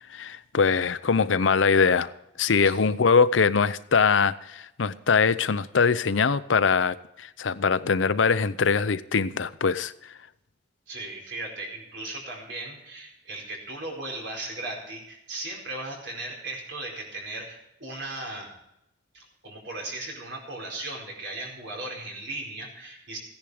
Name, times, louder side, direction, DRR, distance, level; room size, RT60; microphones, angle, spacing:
voice 1, 0.1-2.1 2.4-10.1, left 5 dB, 85° left, 0.7 m, -22 dB
voice 2, 10.9-18.5 19.1-23.2, right 2 dB, 70° right, 4.7 m, -37 dB
15.5 x 10.5 x 4.9 m
head